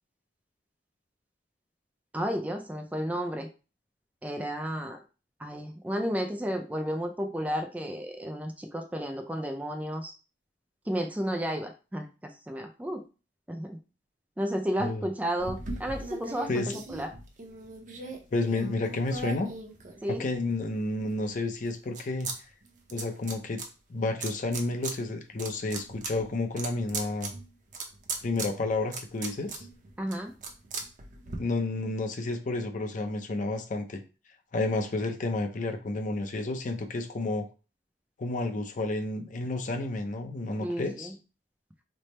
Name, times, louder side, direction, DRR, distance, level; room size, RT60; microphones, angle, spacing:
voice 1, 2.1-3.5 4.2-5.0 5.4-10.1 10.9-13.0 13.5-13.8 14.4-17.1 20.0-20.2 30.0-30.3 40.6-41.1, equal, 10° right, 4 dB, 0.4 m, -32 dB
sound 1, 15.4-20.5 21.0-22.4 22.6-23.7 24.2-24.9 25.3-31.4, right 3 dB, 45° right, 0.6 m, -39 dB
voice 2, 16.5-16.8 18.3-19.5 20.1-22.3 22.9-23.6 23.9-27.3 28.2-29.6 31.4-34.0 34.5-37.5 38.2-41.1, left 2 dB, 45° left, 6 dB, 0.5 m, -31 dB
3.3 x 2.0 x 4.1 m, 0.33 s
head